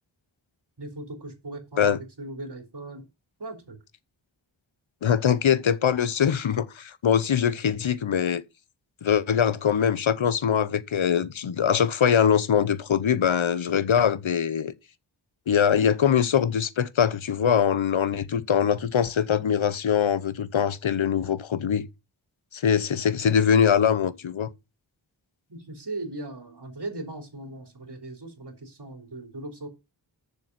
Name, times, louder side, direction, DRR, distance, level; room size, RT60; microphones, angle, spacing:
voice 1, 0.8-3.1 3.4-3.8 25.5-29.7, right 2 dB, 60° right, 3.4 m, -38 dB
voice 2, 5.0-8.4 9.0-14.7 15.5-21.9 22.5-24.5, left 8 dB, 80° left, 0.9 m, -23 dB
7.0 x 6.8 x 5.9 m
wide cardioid pair, 50°, 46 cm